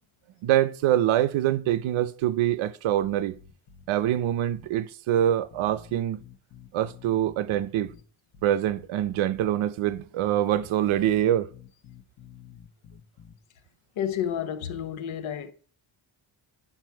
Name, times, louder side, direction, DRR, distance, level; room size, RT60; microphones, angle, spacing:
voice 1, 0.4-3.4 3.9-6.2 6.7-7.9 8.4-11.5, right 12 dB, 80° right, 0.7 m, -24 dB
sound 1, 3.0-4.2 4.5-4.7 5.2-8.0 8.3-9.5 9.8-10.0 10.5-13.4, left 8 dB, 45° left, 1.0 m, -50 dB
voice 2, 14.0-15.5, left 9 dB, 80° left, 1.0 m, -30 dB
8.9 x 5.6 x 4.5 m
cardioid pair, 150°, 48 cm